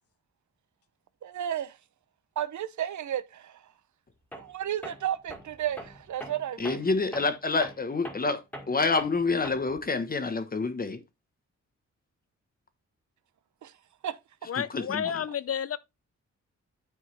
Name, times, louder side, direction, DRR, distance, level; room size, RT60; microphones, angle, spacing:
voice 1, 1.2-1.8 2.4-3.6 4.4-6.8 13.6-13.7 14.0-14.2 15.0-15.1, right 11 dB, 85° right, 0.9 m, -33 dB
Tools, 4.3-4.6 4.8-9.9, equal, 5° left, 1.8 m, -43 dB
voice 2, 6.6-8.4 8.7-11.0 14.5-15.2, left 3 dB, 30° left, 1.2 m, -28 dB
voice 3, 14.5-15.8, left 8 dB, 55° left, 0.6 m, -31 dB
9.7 x 4.7 x 3.3 m
wide cardioid pair, 120°, 29 cm